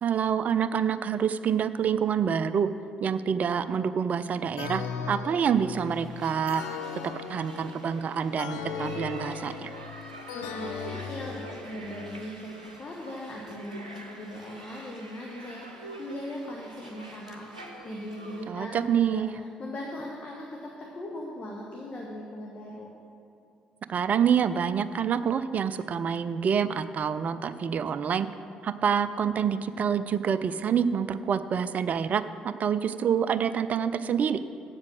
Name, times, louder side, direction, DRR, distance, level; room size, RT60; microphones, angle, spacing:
voice 1, 0.0-2.7 3.0-6.6 7.3-9.7 18.5-19.3 23.9-28.3 28.6-34.4, right 7 dB, 45° right, 13 dB, 0.4 m, -27 dB
sound 1, 4.6-12.2, left 6 dB, 70° left, 0.5 m, -38 dB
sound 2, 5.8-18.5, right 2 dB, 85° right, 0.6 m, -46 dB
voice 2, 10.3-22.9, left 1 dB, 35° left, -2 dB, 1.2 m, -39 dB
8.1 x 7.3 x 6.4 m, 2.5 s
figure-of-eight pair, 45°, 4 cm